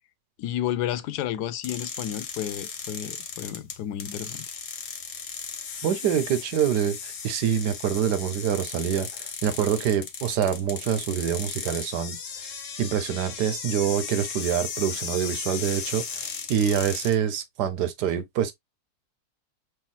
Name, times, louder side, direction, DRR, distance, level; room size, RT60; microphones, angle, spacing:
voice 1, 0.4-4.5, left 11 dB, 80° left, 1.2 m, -31 dB
sound 1, 1.6-17.2, left 6 dB, 55° left, 1.2 m, -36 dB
voice 2, 5.8-12.2 12.8-18.5, right 9 dB, 85° right, 1.4 m, -26 dB
5.7 x 3.1 x 2.2 m
omnidirectional pair, 1.7 m